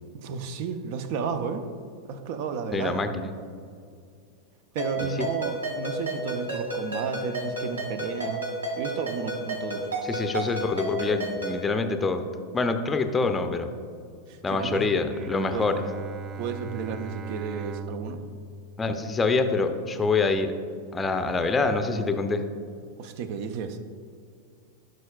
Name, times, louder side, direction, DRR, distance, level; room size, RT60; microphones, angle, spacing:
voice 1, 0.1-1.6 2.0-3.0 4.7-8.5 8.8-9.9 14.3-14.9 15.5-15.7 16.4-18.2 23.0-23.8, right 6 dB, 45° right, 9 dB, 0.7 m, -32 dB
voice 2, 2.7-3.3 10.0-12.2 12.5-13.7 14.4-15.7 18.8-20.5 20.9-22.4, left 3 dB, 15° left, 7 dB, 0.6 m, -25 dB
Ringtone, 4.8-11.6, right 1 dB, 75° right, 2.1 m, -32 dB
Bowed string instrument, 15.1-20.4, right 4 dB, 30° right, 0.3 m, -40 dB
15.0 x 6.4 x 2.4 m, 2.3 s
figure-of-eight pair, 90°, 0 cm